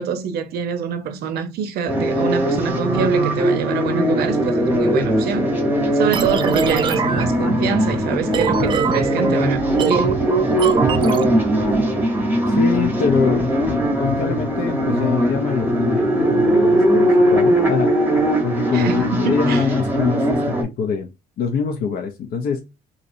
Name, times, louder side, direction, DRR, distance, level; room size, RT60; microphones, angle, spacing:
voice 1, 0.0-5.5 5.9-10.1 18.7-19.7, right 7 dB, 70° right, 0.6 m, -25 dB
sound 1, 1.9-20.6, equal, 10° right, 0.9 m, -19 dB
sound 2, 6.1-11.8, right 6 dB, 30° right, 0.3 m, -24 dB
voice 2, 12.5-17.9 18.4-21.1 21.4-22.6, left 6 dB, 60° left, 0.6 m, -24 dB
3.0 x 2.7 x 2.6 m
cardioid pair, 110°, 17 cm